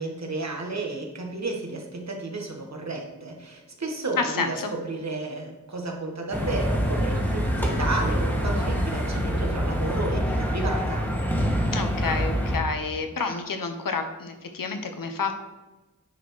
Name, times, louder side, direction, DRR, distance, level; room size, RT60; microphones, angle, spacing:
voice 1, 0.0-11.0, right 2 dB, 55° right, 1 dB, 1.5 m, -32 dB
voice 2, 4.2-4.7 11.7-15.3, left 4 dB, 85° left, 6 dB, 0.9 m, -29 dB
sound 1, 6.3-12.6, equal, 5° left, 1.8 m, -25 dB
9.7 x 4.4 x 4.7 m, 1.1 s
wide cardioid pair, 85°, 32 cm